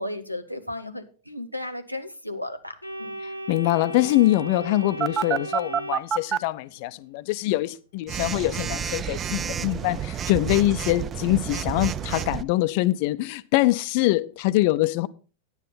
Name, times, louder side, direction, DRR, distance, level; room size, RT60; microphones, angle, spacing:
voice 1, 0.0-3.2, left 1 dB, 90° right, 0.9 m, -34 dB
Organ, 2.8-6.8, right 1 dB, 90° left, 0.8 m, -36 dB
voice 2, 3.5-15.1, left 17 dB, 45° left, 0.5 m, -24 dB
Telephone, 5.0-6.4 8.1-12.4, right 8 dB, 25° right, 0.4 m, -29 dB
9.8 x 9.5 x 3.9 m
figure-of-eight pair, 90°, 0 cm